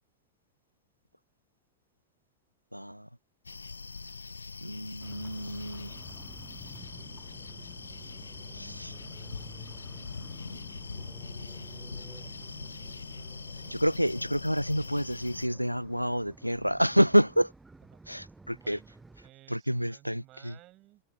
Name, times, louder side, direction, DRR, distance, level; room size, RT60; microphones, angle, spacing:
voice 1, 2.7-3.1 4.6-6.0 8.5-9.0 13.7-17.5 18.1-18.8 19.5-20.5, equal, 90° right, 0.4 m, -28 dB
sound 1, 3.5-15.5, left 4 dB, 75° left, 0.8 m, -42 dB
sound 2, 5.0-19.3, right 3 dB, 10° right, 0.8 m, -52 dB
voice 2, 17.8-21.0, right 17 dB, 35° right, 7.2 m, -57 dB
figure-of-eight pair, 90°, 0 cm